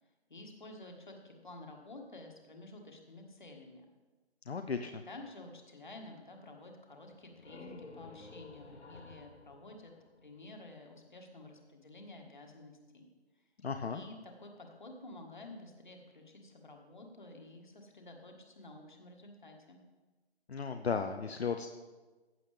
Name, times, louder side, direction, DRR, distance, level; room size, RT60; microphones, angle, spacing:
voice 1, 0.3-3.9 5.1-9.9 10.2-13.1 13.8-19.8, left 2 dB, 45° left, 3 dB, 1.6 m, -51 dB
voice 2, 4.5-5.0 13.6-14.0 20.5-21.7, left 5 dB, 70° left, 7 dB, 0.7 m, -35 dB
sound 1, 7.0-10.7, left 3 dB, 85° left, 1.6 m, -52 dB
15.0 x 7.8 x 3.4 m, 1.3 s
figure-of-eight pair, 175°, 33 cm